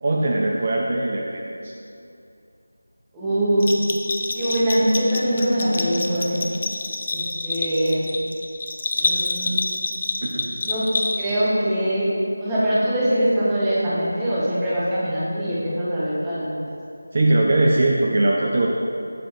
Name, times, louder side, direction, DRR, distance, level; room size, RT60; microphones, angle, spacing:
voice 1, 0.0-1.7 10.2-10.6 17.1-18.7, right 2 dB, 35° right, -2 dB, 0.5 m, -21 dB
voice 2, 3.1-3.7 4.3-6.4 7.1-8.1 8.9-9.6 10.6-10.9 11.2-12.1 12.4-16.7, right 1 dB, 5° right, -10 dB, 0.9 m, -22 dB
Bell, 3.6-11.5, left 3 dB, 30° left, 0.5 m, -27 dB
7.6 x 5.1 x 4.4 m, 2.5 s
figure-of-eight pair, 175°, 0 cm